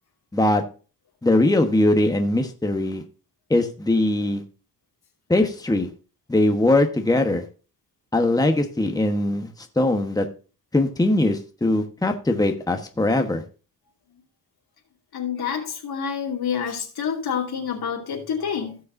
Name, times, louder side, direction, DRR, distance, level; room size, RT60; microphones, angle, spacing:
voice 1, 1.2-3.0 3.5-4.4 5.3-5.9 6.3-7.4 8.1-9.5 9.8-10.3 10.7-13.4, left 2 dB, 10° left, 1.2 m, -21 dB
voice 2, 15.1-18.8, left 7 dB, 80° left, 2.7 m, -28 dB
16.5 x 6.5 x 2.6 m
wide cardioid pair, 110°, 37 cm